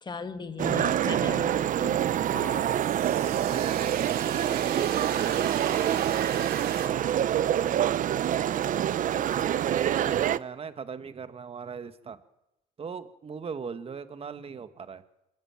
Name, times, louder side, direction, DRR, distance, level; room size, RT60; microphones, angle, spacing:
voice 1, 0.0-2.1 2.3-2.7, left 5 dB, 25° left, 10 dB, 1.9 m, -38 dB
sound 1, 0.6-10.4, right 11 dB, 50° right, 0.7 m, -26 dB
sound 2, 1.4-6.9, right 9 dB, 70° right, 3.4 m, -39 dB
voice 2, 3.0-6.2 6.7-8.6 9.0-12.2 12.8-15.0, right 6 dB, 35° right, 11 dB, 1.7 m, -39 dB
27.0 x 13.5 x 8.9 m, 0.92 s
cardioid pair, 110°, 17 cm